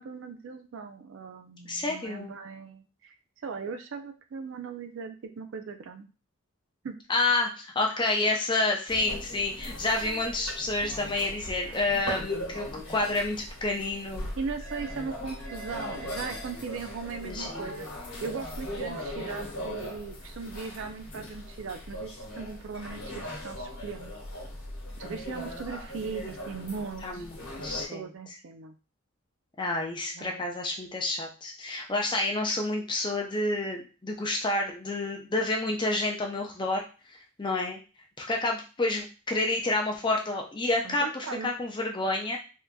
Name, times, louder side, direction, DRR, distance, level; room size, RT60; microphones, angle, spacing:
voice 1, 0.0-3.1 3.4-6.1 6.8-7.0 11.6-12.2 14.4-17.9 18.2-24.1 25.0-27.3 27.7-28.7 30.1-30.5 40.8-41.5, right 5 dB, 60° right, 6 dB, 0.4 m, -39 dB
voice 2, 1.6-2.3 7.1-14.3 17.2-17.7 27.0-27.4 27.6-28.1 29.6-36.8 37.1-37.8 38.2-42.4, left 2 dB, 20° left, 1 dB, 0.4 m, -29 dB
sound 1, 8.9-27.8, left 1 dB, 75° left, 1.2 m, -39 dB
3.6 x 2.6 x 2.2 m, 0.33 s
head